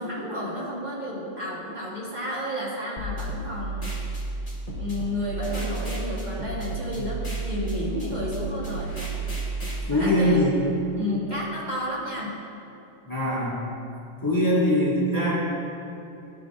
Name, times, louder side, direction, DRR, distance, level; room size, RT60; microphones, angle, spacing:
voice 1, 0.0-3.8 4.7-9.0 9.9-10.4 11.0-12.4, left 1 dB, 40° right, -7 dB, 1.2 m, -31 dB
sound 1, 3.0-9.8, right 3 dB, 35° left, 1.5 m, -32 dB
voice 2, 9.8-10.7 13.0-13.6 14.2-15.4, left 1 dB, 15° left, -9 dB, 1.5 m, -22 dB
12.5 x 5.3 x 2.3 m, 2.8 s
omnidirectional pair, 1.2 m